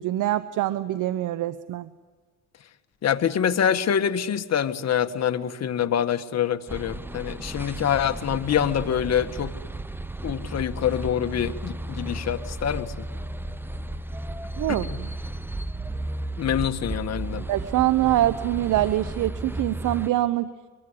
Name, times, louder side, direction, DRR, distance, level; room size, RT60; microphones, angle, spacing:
voice 1, 0.0-1.9 14.6-15.1 17.5-20.5, right 14 dB, 85° right, 14 dB, 0.9 m, -24 dB
voice 2, 3.0-9.5 10.2-13.1 14.7-15.0 16.4-17.4, left 9 dB, 60° left, 8 dB, 1.8 m, -25 dB
sound 1, 6.7-20.1, right 1 dB, 5° right, 1.0 m, -34 dB
24.5 x 22.5 x 10.0 m, 1.4 s
cardioid pair, 90°, 30 cm